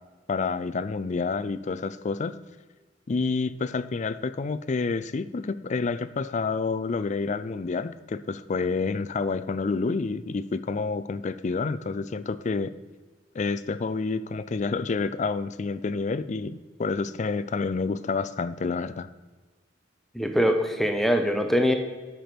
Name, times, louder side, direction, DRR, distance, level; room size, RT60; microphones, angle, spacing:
voice 1, 0.3-2.4 3.1-12.7 13.3-19.1, left 4 dB, 40° left, 14 dB, 0.4 m, -29 dB
voice 2, 20.1-21.7, equal, ahead, 5 dB, 0.8 m, -23 dB
9.1 x 6.0 x 5.1 m, 1.3 s
head